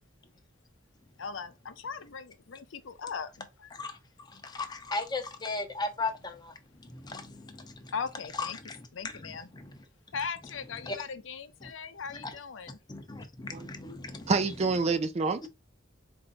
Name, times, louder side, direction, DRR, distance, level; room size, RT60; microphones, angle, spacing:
voice 1, 1.2-3.7 7.9-8.6 8.9-9.5 10.1-12.8, left 5 dB, 75° left, 0.6 m, -39 dB
voice 2, 3.7-7.9 8.3-8.9 9.1-9.8 10.8-11.0 11.6-11.7 12.1-12.3 12.9-14.3, left 3 dB, 20° left, 0.7 m, -37 dB
voice 3, 14.3-15.5, right 4 dB, 35° right, 0.4 m, -27 dB
4.4 x 2.6 x 3.9 m
head